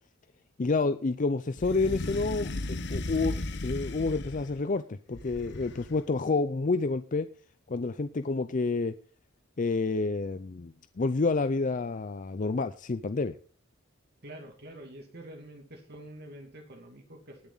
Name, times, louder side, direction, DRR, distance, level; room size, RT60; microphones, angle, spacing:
voice 1, 0.6-7.3 7.7-8.9 9.6-13.4, left 3 dB, 40° left, 11 dB, 0.5 m, -29 dB
sound 1, 1.6-4.6 5.1-6.1, left 2 dB, 55° left, 1.0 m, -35 dB
voice 2, 14.2-17.4, right 1 dB, 50° right, 3 dB, 2.4 m, -46 dB
19.5 x 7.0 x 4.0 m, 0.41 s
head